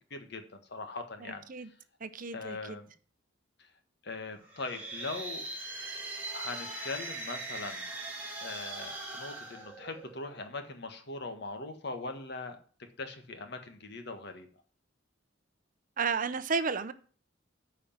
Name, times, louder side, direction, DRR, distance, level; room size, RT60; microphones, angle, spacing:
voice 1, 0.1-1.4 2.3-2.9 4.0-5.5 6.3-7.9 8.4-12.6 13.0-14.5, left 3 dB, 60° left, 7 dB, 1.5 m, -41 dB
voice 2, 1.2-1.7 2.0-2.8 16.0-16.9, right 5 dB, 45° right, 13 dB, 0.7 m, -33 dB
sound 1, 4.4-10.4, right 2 dB, 10° right, 2.9 m, -40 dB
9.0 x 5.1 x 7.3 m, 0.41 s
head